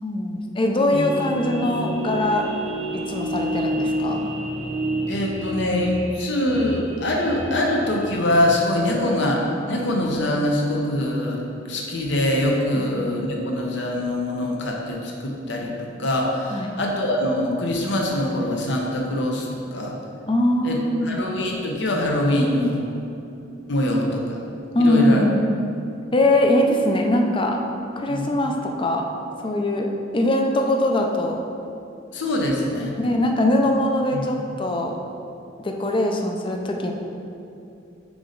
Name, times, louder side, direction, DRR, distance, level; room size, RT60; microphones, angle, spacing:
voice 1, 0.0-2.6 2.9-4.3 12.8-13.0 16.5-16.7 20.3-21.2 24.7-25.4 26.1-27.6 28.0-29.0 29.4-29.9 30.1-31.4 33.0-35.0 35.6-36.9, left 1 dB, 25° left, 2 dB, 0.5 m, -21 dB
sound 1, 0.9-8.4, right 1 dB, 35° right, 0.6 m, -29 dB
voice 2, 5.1-11.4 11.7-19.9 20.6-22.8 23.7-24.4 24.8-25.2 28.1-28.4 32.1-33.0 34.1-34.2, left 1 dB, 65° left, -1 dB, 0.9 m, -23 dB
5.2 x 4.7 x 3.9 m, 2.7 s
head